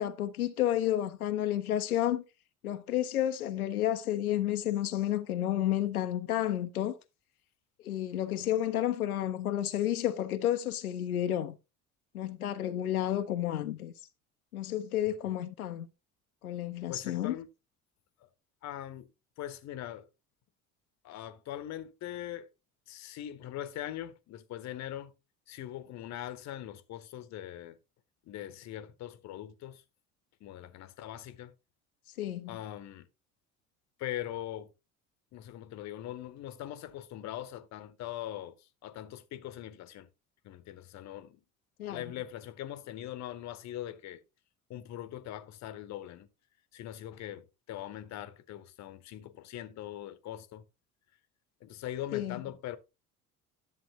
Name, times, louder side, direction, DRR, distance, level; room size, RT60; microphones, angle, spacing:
voice 1, 0.0-2.2 2.6-7.0 7.8-11.6 12.1-13.9 14.5-15.9 16.4-17.4 32.2-32.5 41.8-42.0 52.1-52.4, left 12 dB, 80° left, 0.6 m, -31 dB
voice 2, 16.9-17.5 18.2-18.3 18.6-19.1 19.4-20.1 21.0-22.5 22.9-25.1 25.5-27.8 28.3-29.8 30.4-31.5 32.5-33.1 34.0-34.7 35.3-40.1 40.4-41.4 41.9-44.2 44.7-46.3 46.7-50.6 51.6-52.8, left 12 dB, 40° left, 0.9 m, -41 dB
10.5 x 7.5 x 2.9 m
figure-of-eight pair, 60°, 44 cm